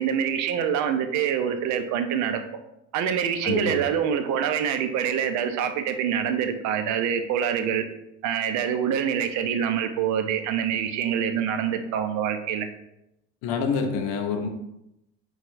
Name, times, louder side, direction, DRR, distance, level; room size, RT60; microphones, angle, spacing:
voice 1, 0.0-2.4 2.9-7.8 8.2-12.7, right 8 dB, 60° right, 8 dB, 0.5 m, -25 dB
voice 2, 3.4-3.8 13.4-14.5, left 5 dB, 75° left, 5 dB, 0.6 m, -27 dB
4.2 x 2.3 x 2.6 m, 0.83 s
hypercardioid pair, 75°, 33 cm